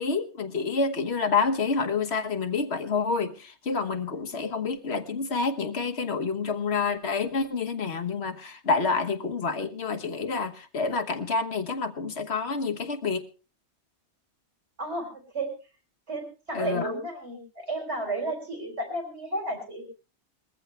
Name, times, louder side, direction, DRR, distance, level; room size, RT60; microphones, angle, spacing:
voice 1, 0.0-13.2 16.5-16.9, left 4 dB, 70° left, 7 dB, 1.5 m, -28 dB
voice 2, 4.1-4.5 14.8-15.5 16.1-19.8, right 1 dB, 80° right, 4 dB, 4.6 m, -33 dB
20.5 x 14.5 x 3.3 m, 0.33 s
omnidirectional pair, 1.1 m